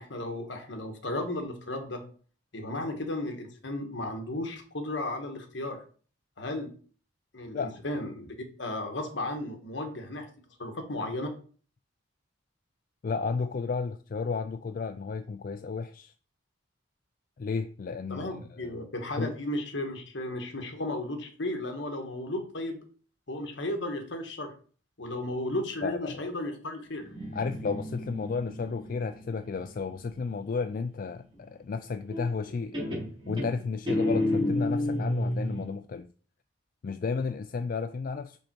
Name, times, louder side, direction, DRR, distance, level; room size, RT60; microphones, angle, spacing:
voice 1, 0.0-2.0 2.5-5.8 6.4-6.7 7.3-10.3 10.6-11.3 18.1-22.8 23.3-24.5 25.0-27.1, left 1 dB, 70° left, 1.4 m, -34 dB
voice 2, 13.0-16.1 17.4-18.8 19.2-19.3 25.8-26.2 27.3-32.8 33.3-36.1 36.8-38.4, left 4 dB, 45° left, 0.3 m, -33 dB
Guitar, 27.0-30.6 32.1-32.5 32.7-35.7, left 1 dB, 25° right, 3.6 m, -31 dB
5.6 x 5.4 x 4.4 m
head